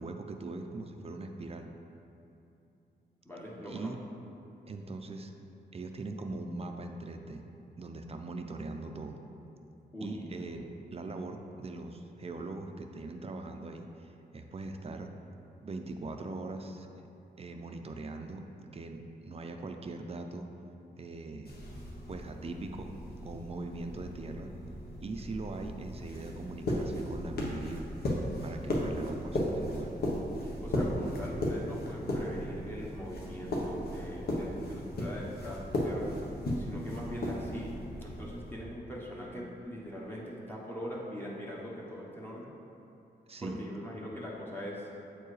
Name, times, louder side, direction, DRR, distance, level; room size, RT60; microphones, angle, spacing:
voice 1, 0.0-1.7 3.7-4.0 4.7-5.3 5.7-7.4 7.8-9.2 10.0-15.1 15.6-16.9 17.4-18.4 18.7-20.5 21.0-21.5 22.1-22.9 23.2-24.5 25.0-27.8 28.4-29.9 43.3-43.6, right 3 dB, 35° right, 5 dB, 0.4 m, -41 dB
voice 2, 3.2-3.9 9.9-10.3 30.6-42.6 43.4-44.9, equal, 10° left, -5 dB, 1.0 m, -42 dB
sound 1, 21.4-38.5, left 1 dB, 65° left, 1.1 m, -36 dB
7.9 x 4.5 x 3.2 m, 2.9 s
wide cardioid pair, 100°, 18 cm